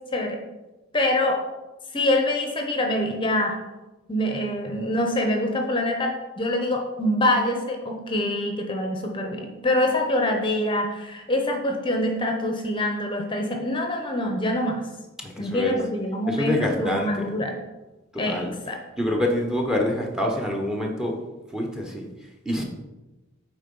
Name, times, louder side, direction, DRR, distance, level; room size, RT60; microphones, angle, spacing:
voice 1, 0.1-0.4 0.9-1.4 1.9-3.5 4.1-14.8 15.4-17.6 18.2-18.8, left 1 dB, 25° left, 2 dB, 0.8 m, -25 dB
voice 2, 15.2-15.8 16.3-17.4 18.1-18.6 19.0-22.1 22.4-22.6, left 1 dB, 5° right, 1 dB, 0.9 m, -26 dB
8.8 x 3.7 x 5.4 m, 1.1 s
head